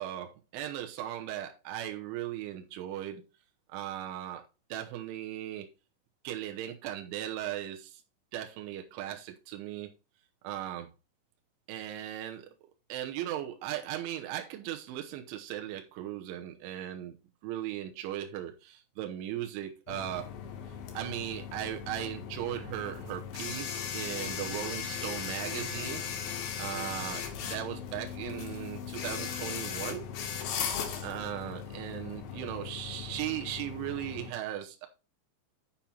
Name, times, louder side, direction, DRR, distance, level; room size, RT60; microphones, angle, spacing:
voice 1, 0.0-3.2 3.7-4.4 4.7-5.7 6.3-8.0 8.3-9.9 10.4-10.9 11.7-12.5 12.9-17.2 17.4-20.3 21.0-26.0 26.6-30.1 31.0-34.9, right 12 dB, 80° right, 3.4 m, -37 dB
sound 1, 19.9-34.3, left 8 dB, 65° left, 2.6 m, -38 dB
9.1 x 5.7 x 4.4 m
omnidirectional pair, 5.6 m